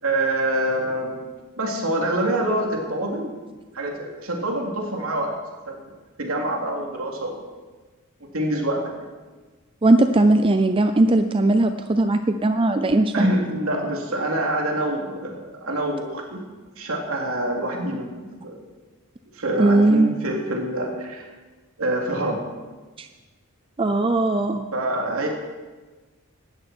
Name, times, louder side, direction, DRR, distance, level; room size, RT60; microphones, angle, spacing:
voice 1, 0.0-1.1 1.6-3.4 3.7-5.3 5.7-5.8 6.2-7.4 8.3-9.1 13.1-16.4 16.8-18.6 19.3-21.3 21.8-22.4 24.7-25.3, right 1 dB, 70° right, 0 dB, 3.0 m, -26 dB
voice 2, 9.8-13.3 19.6-20.1 23.0-23.1 23.8-24.6, right 2 dB, 25° right, 9 dB, 0.5 m, -18 dB
17.5 x 13.0 x 4.5 m, 1.3 s
head